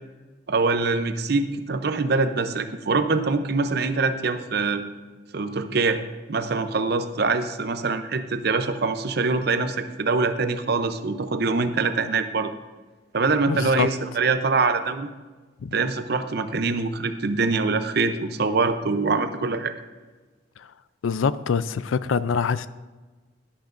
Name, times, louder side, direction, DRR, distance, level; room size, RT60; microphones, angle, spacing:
voice 1, 0.5-4.8 5.3-6.0 6.3-12.5 13.1-15.1 15.7-19.7, right 3 dB, 55° right, 9 dB, 0.6 m, -24 dB
voice 2, 13.5-13.9 15.6-15.8 21.0-22.7, left 6 dB, 85° left, 16 dB, 0.4 m, -24 dB
11.5 x 11.5 x 2.6 m, 1.3 s
head